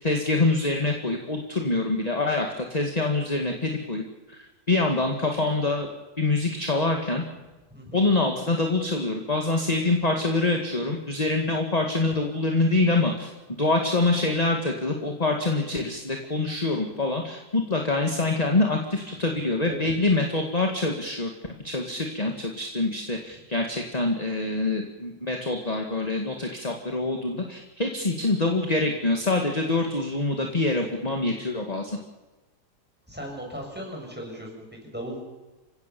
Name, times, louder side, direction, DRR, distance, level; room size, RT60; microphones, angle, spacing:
voice 1, 0.0-4.0 4.3-5.9 6.2-7.2 7.9-13.3 13.6-21.3 21.6-32.0, left 2 dB, 25° left, 3 dB, 2.0 m, -25 dB
voice 2, 33.1-35.2, equal, 5° right, 0 dB, 6.7 m, -37 dB
29.0 x 17.0 x 7.0 m, 1.2 s
omnidirectional pair, 1.7 m